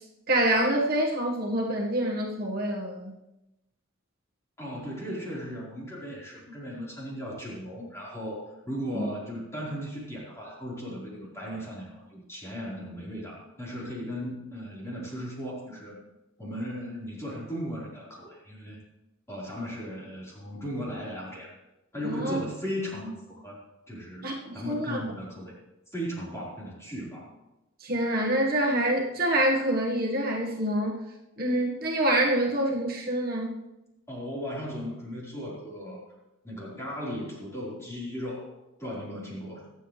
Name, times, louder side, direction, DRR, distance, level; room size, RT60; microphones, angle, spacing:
voice 1, 0.3-3.2 8.9-9.1 22.0-22.4 24.2-25.0 27.8-31.0 31.4-33.5, right 1 dB, 45° right, -1 dB, 1.6 m, -26 dB
voice 2, 4.6-16.0 16.4-18.8 19.3-21.5 21.9-23.6 23.9-25.5 25.9-27.3 34.1-36.0 36.4-38.5 38.8-39.7, equal, 15° left, -6 dB, 4.4 m, -36 dB
23.5 x 8.2 x 3.3 m, 0.94 s
head